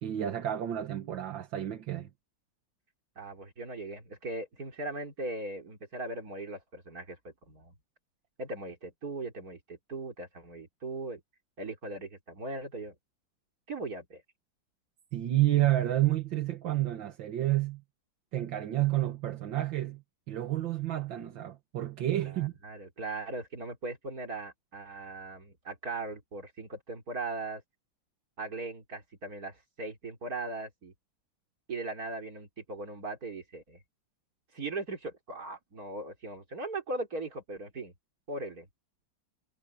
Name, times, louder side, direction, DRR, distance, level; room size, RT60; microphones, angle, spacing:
voice 1, 0.0-2.1 15.1-17.8 18.3-20.0 20.3-22.5, right 14 dB, 80° right, 2.0 m, -30 dB
voice 2, 3.2-7.7 8.4-11.2 11.6-12.9 13.7-14.2 22.2-27.6 28.4-30.9 31.7-33.8 34.5-37.9 38.3-38.7, right 2 dB, 50° right, 4.0 m, -39 dB
omnidirectional pair, 2.0 m